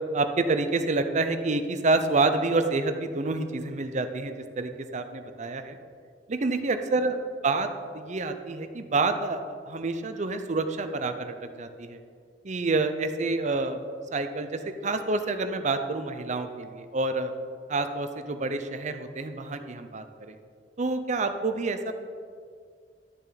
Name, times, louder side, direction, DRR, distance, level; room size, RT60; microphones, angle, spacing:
voice 1, 0.1-5.8 6.3-7.2 7.4-7.7 7.9-12.0 12.4-13.8 14.1-17.3 17.7-20.4 20.8-21.9, right 3 dB, 45° right, 8 dB, 0.7 m, -28 dB
12.0 x 6.9 x 4.0 m, 2.2 s
head